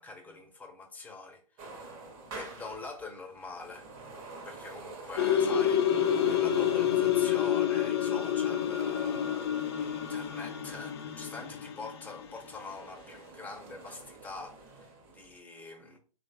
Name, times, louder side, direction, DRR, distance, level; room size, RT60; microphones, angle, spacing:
voice 1, 0.0-1.8 2.3-3.9 4.5-9.5 9.8-16.0, left 3 dB, 10° left, 0.7 m, -44 dB
sound 1, 1.6-11.4 12.0-15.4, right 3 dB, 30° right, 0.9 m, -48 dB
sound 2, 5.2-12.3, left 9 dB, 45° left, 0.5 m, -28 dB
3.1 x 2.4 x 4.1 m
figure-of-eight pair, 115°, 18 cm